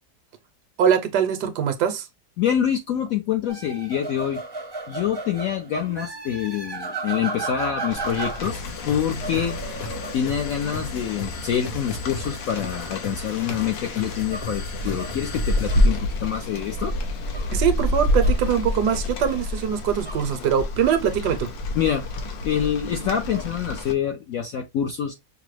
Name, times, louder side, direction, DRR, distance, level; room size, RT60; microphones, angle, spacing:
voice 1, 0.8-2.1 17.5-21.5, right 8 dB, 70° right, 1.1 m, -22 dB
voice 2, 2.4-4.4 4.9-9.7 10.1-16.9 21.7-22.0 22.4-25.1, left 9 dB, 75° left, 0.8 m, -26 dB
sound 1, 3.5-8.6 8.9-11.1 14.1-15.9 16.5-16.7 17.3-17.5 18.1-18.5 19.2-19.5 19.7-21.2 21.7-22.1 22.6-23.4, right 3 dB, 30° right, 0.4 m, -36 dB
Rain, 7.9-23.9, left 1 dB, 90° left, 1.5 m, -28 dB
sound 2, 8.4-16.0, left 3 dB, 55° left, 1.3 m, -35 dB
5.8 x 2.0 x 3.1 m
omnidirectional pair, 1.9 m